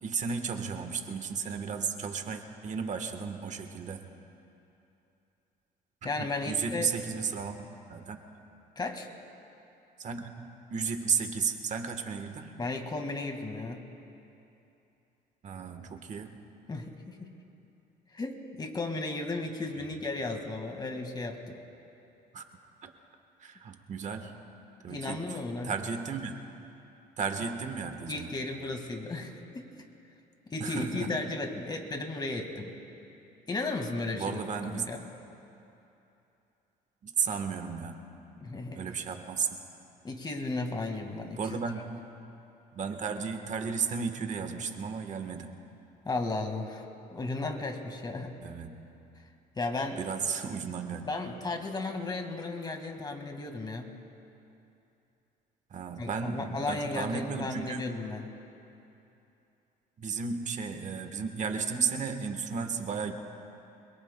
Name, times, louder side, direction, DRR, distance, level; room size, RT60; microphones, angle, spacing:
voice 1, 0.0-4.1 6.2-7.6 7.9-8.2 10.0-12.5 15.4-16.3 19.8-20.0 22.3-22.4 22.8-22.9 23.4-24.4 24.8-25.4 25.6-26.4 27.2-28.3 30.6-31.2 34.1-34.9 37.0-38.0 38.7-39.6 41.4-42.0 42.7-45.6 48.4-48.9 50.0-51.1 55.7-57.9 60.0-63.1, right 5 dB, 45° right, 6 dB, 1.2 m, -34 dB
voice 2, 6.0-6.9 8.8-9.1 12.6-13.9 16.7-17.4 18.1-21.6 24.9-25.8 28.1-29.7 30.5-32.7 33.5-34.4 34.7-35.0 38.4-38.8 40.0-41.6 46.1-46.9 47.1-48.4 49.6-50.0 51.1-53.9 56.0-58.3, left 3 dB, 25° left, 4 dB, 1.8 m, -34 dB
26.5 x 22.0 x 2.2 m, 2.8 s
cardioid pair, 110°, 17 cm